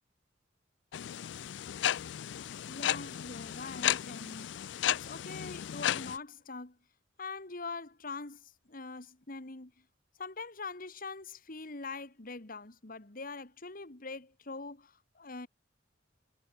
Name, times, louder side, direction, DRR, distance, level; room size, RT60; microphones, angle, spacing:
sound 1, 0.9-6.2, left 11 dB, 65° left, 0.4 m, -34 dB
voice 1, 2.5-4.5 4.8-6.8 7.2-9.7 10.2-15.5, left 3 dB, 50° left, 1.9 m, -43 dB
head